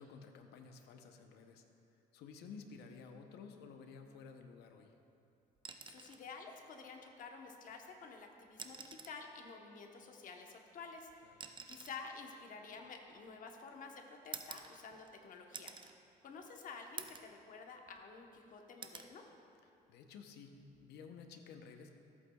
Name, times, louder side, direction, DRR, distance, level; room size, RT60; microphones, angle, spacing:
voice 1, 0.0-1.6 2.1-5.0 11.2-11.4 19.9-21.9, left 5 dB, 80° left, 5 dB, 0.8 m, -53 dB
sound 1, 5.6-6.3 7.7-7.8 8.5-9.3 10.4-13.5 14.3-15.2 15.5-16.0 16.4-16.5 17.0-17.4 17.8-18.4 18.8-19.1 20.6-20.8, right 6 dB, 30° right, 0.5 m, -50 dB
voice 2, 5.8-11.3 11.7-15.7 16.2-19.2, left 4 dB, 50° left, 3 dB, 1.0 m, -51 dB
14.0 x 8.3 x 2.3 m, 2.7 s
cardioid pair, 110°, 17 cm